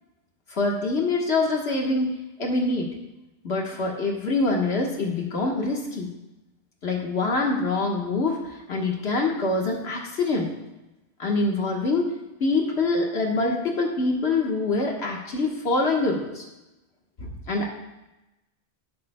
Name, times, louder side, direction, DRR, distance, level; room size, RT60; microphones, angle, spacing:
voice 1, 0.5-2.9 3.4-6.1 6.8-10.5 11.2-12.1 12.4-16.4 17.2-17.7, left 3 dB, 70° left, 0 dB, 1.6 m, -25 dB
15.5 x 8.5 x 2.2 m, 0.99 s
omnidirectional pair, 1.1 m